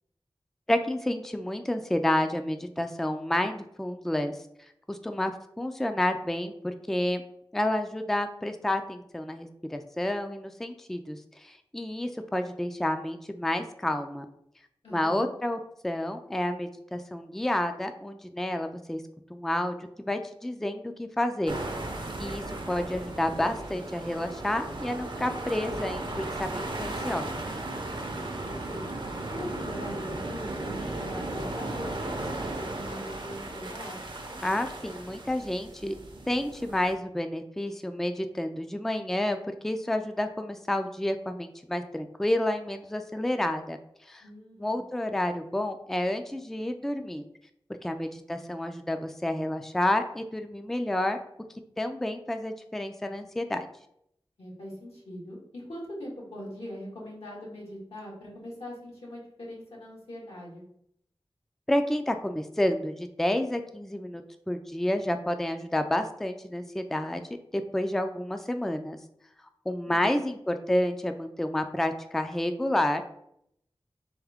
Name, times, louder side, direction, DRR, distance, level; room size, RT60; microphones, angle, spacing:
voice 1, 0.7-4.4 4.9-5.3 5.6-7.2 7.5-11.2 11.4-14.3 14.9-19.0 19.3-21.6 22.2-27.3 34.4-35.9 36.3-39.4 39.6-43.8 44.1-44.2 44.6-47.2 47.8-51.2 51.8-53.7 61.7-64.2 64.5-67.2 67.5-69.0 69.7-73.0, left 1 dB, 5° left, 7 dB, 0.3 m, -30 dB
voice 2, 14.8-15.3 28.0-28.8 29.3-34.0 44.2-44.8 54.4-60.6 69.8-70.2, equal, 85° left, -6 dB, 1.7 m, -42 dB
sound 1, 21.5-36.9, right 2 dB, 55° right, 0.6 m, -36 dB
3.5 x 3.5 x 3.5 m, 0.73 s
wide cardioid pair, 55°, 10 cm